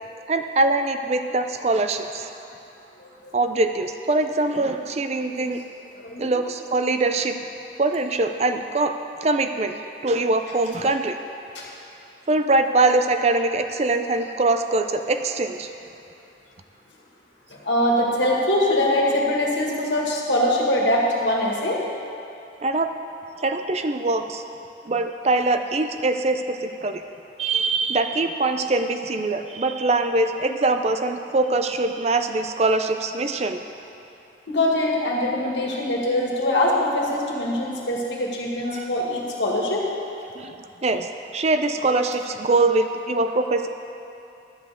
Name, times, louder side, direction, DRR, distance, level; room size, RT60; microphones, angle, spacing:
voice 1, 0.3-2.3 3.3-5.6 6.2-7.4 7.8-9.8 10.0-11.2 12.3-15.7 22.6-22.9 23.4-24.4 24.9-27.0 27.4-33.6 38.7-38.9 40.3-43.7, right 2 dB, 35° right, 7 dB, 0.5 m, -23 dB
voice 2, 3.0-3.3 5.4-5.5 6.0-6.3 11.5-11.7 17.5-21.8 34.5-39.8, left 1 dB, 70° left, -2 dB, 1.8 m, -23 dB
12.0 x 5.2 x 7.8 m, 2.7 s
head